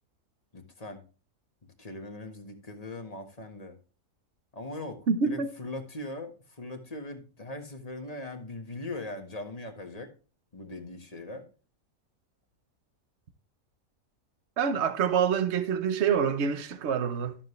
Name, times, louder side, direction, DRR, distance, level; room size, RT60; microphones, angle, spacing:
voice 1, 0.5-1.0 1.6-3.8 4.5-10.1 10.5-11.5, left 2 dB, 30° left, 1.6 m, -40 dB
voice 2, 5.1-5.5 14.6-17.4, right 7 dB, 55° right, 1.2 m, -26 dB
13.0 x 7.5 x 3.2 m
omnidirectional pair, 1.5 m